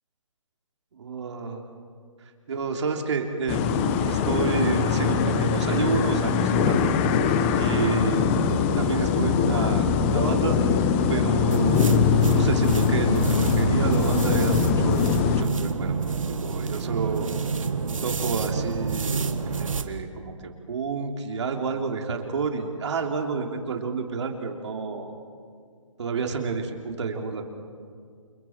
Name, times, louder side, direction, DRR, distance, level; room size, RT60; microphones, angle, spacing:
voice 1, 0.9-1.6 2.5-6.9 7.6-10.6 11.1-11.9 12.3-16.0 16.4-17.3 18.0-20.3 20.7-25.1 26.0-27.4, right 5 dB, 60° right, 3 dB, 3.3 m, -29 dB
sound 1, 3.5-15.4, left 6 dB, 25° left, 1.2 m, -22 dB
sound 2, 11.5-19.9, right 5 dB, 75° right, 1.8 m, -28 dB
29.0 x 27.0 x 4.6 m, 2.2 s
hypercardioid pair, 150°, 17 cm